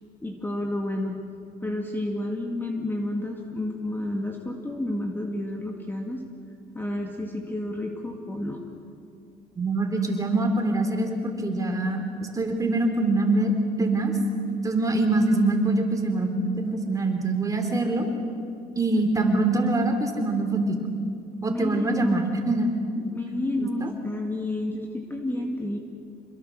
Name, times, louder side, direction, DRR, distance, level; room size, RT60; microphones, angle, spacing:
voice 1, 0.2-1.2 1.6-6.2 6.7-8.6 18.9-19.5 21.5-22.4 23.1-25.8, left 1 dB, 10° left, 1 dB, 2.1 m, -30 dB
voice 2, 9.6-13.5 13.8-14.2 14.6-18.1 18.8-20.8 21.4-22.7 23.6-23.9, right 2 dB, 20° right, 3 dB, 3.7 m, -24 dB
27.0 x 21.5 x 6.6 m, 2.4 s
cardioid pair, 110°, 17 cm